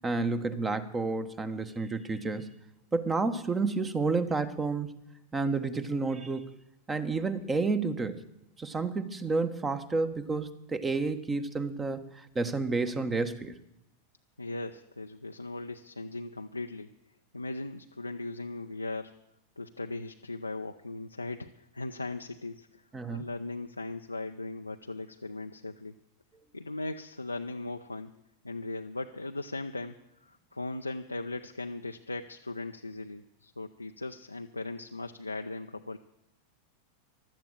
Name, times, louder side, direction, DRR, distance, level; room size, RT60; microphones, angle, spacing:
voice 1, 0.0-2.5 2.9-4.9 5.3-6.6 6.9-8.2 8.6-13.6 22.9-23.3, right 3 dB, 15° right, 12 dB, 1.1 m, -30 dB
voice 2, 14.4-16.9 17.3-19.1 19.6-26.0 26.5-28.1 28.4-36.0, left 2 dB, 85° left, 5 dB, 0.5 m, -38 dB
15.0 x 12.0 x 7.3 m, 0.86 s
figure-of-eight pair, 90°, 0 cm